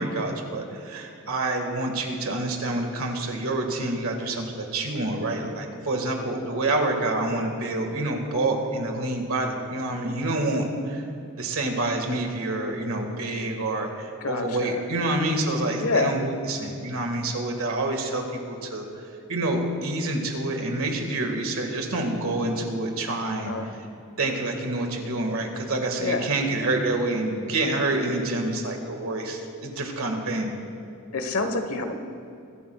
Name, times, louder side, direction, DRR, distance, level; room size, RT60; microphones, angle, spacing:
voice 1, 0.0-11.0 11.4-23.5 24.2-30.5, right 2 dB, 70° right, 3 dB, 1.8 m, -27 dB
voice 2, 14.2-14.8 15.8-16.2 23.5-23.7 26.0-26.3 31.1-31.9, left 3 dB, 75° left, 7 dB, 1.2 m, -27 dB
23.0 x 12.0 x 2.3 m, 2.6 s
head